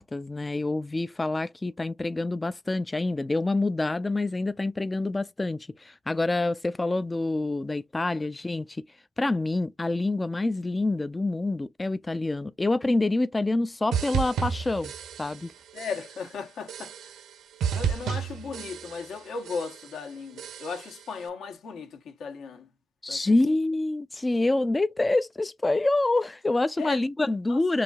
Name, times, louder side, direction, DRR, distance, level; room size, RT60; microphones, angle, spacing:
voice 1, 0.0-8.8 9.2-14.9 15.2-15.5 23.0-27.8, left 2 dB, 20° left, 0.4 m, -27 dB
sound 1, 13.9-15.5 15.8-16.3 16.7-17.3 17.6-19.2 19.5-20.0 20.4-21.0, right 7 dB, 75° right, 0.7 m, -32 dB
voice 2, 15.7-17.1 17.7-22.7 23.1-23.3 26.8-27.0 27.5-27.6, left 5 dB, 70° left, 1.3 m, -36 dB
4.6 x 2.7 x 2.4 m
cardioid pair, 90°, 0 cm